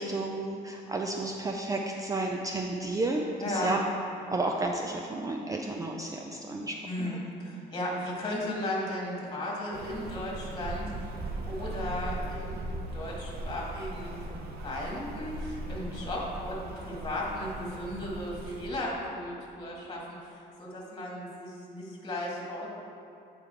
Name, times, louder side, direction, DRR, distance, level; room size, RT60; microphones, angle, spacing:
voice 1, 0.0-3.8 4.3-7.2, right 2 dB, 20° right, 2 dB, 0.4 m, -32 dB
voice 2, 3.4-3.7 6.8-11.1 11.5-20.0 20.6-22.7, left 1 dB, 25° left, -3 dB, 1.6 m, -35 dB
Rain, 9.7-18.7, right 2 dB, 65° right, 0.8 m, -39 dB
8.8 x 3.7 x 4.6 m, 2.6 s
cardioid pair, 110°, 17 cm